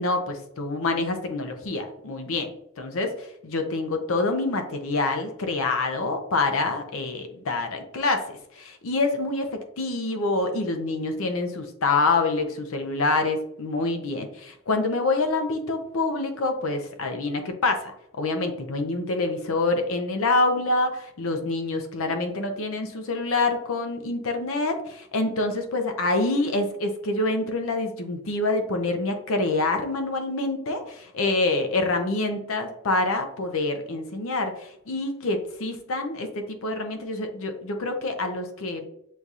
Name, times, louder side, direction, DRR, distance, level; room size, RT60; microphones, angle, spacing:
voice 1, 0.0-2.5 2.8-38.9, left 2 dB, 75° left, 6 dB, 0.6 m, -26 dB
6.3 x 2.8 x 2.4 m, 0.76 s
head